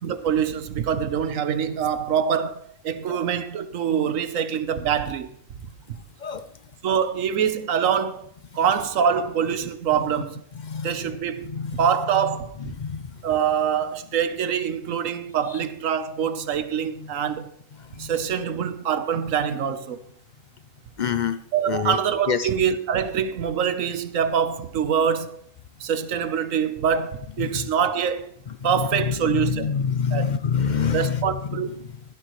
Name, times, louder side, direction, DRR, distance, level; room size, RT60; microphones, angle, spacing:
voice 1, 0.0-5.3 6.8-8.2 8.5-10.4 10.8-12.5 13.2-17.5 18.0-20.0 21.5-25.4 25.8-28.3 28.6-29.7 30.1-30.3 30.9-31.7, right 8 dB, 80° right, 1.3 m, -24 dB
voice 2, 11.5-11.8 12.8-13.0 18.0-18.1 21.0-21.4 21.7-22.0 22.3-22.5 29.3-31.2, left 7 dB, 55° left, 0.5 m, -25 dB
15.5 x 12.0 x 3.1 m
omnidirectional pair, 1.3 m